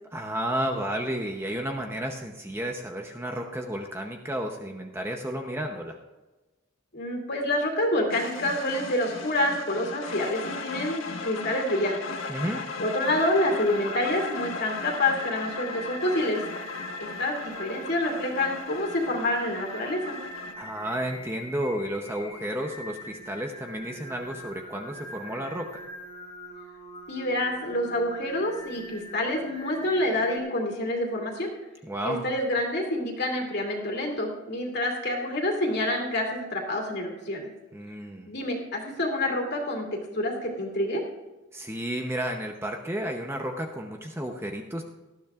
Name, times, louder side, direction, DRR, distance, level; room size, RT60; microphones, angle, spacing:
voice 1, 0.1-6.0 12.3-12.6 20.6-25.8 31.8-32.2 37.7-38.3 41.5-44.8, right 1 dB, 10° right, 2 dB, 0.7 m, -32 dB
voice 2, 6.9-12.0 12.8-16.4 17.0-20.2 27.1-31.5 32.0-37.5 38.2-39.8 40.1-41.0, left 1 dB, 50° left, 1 dB, 2.6 m, -27 dB
sound 1, 8.1-20.5, left 4 dB, 70° left, 1.3 m, -37 dB
Singing, 13.0-30.4, equal, 25° left, 2.1 m, -43 dB
18.5 x 13.0 x 2.4 m, 1.2 s
head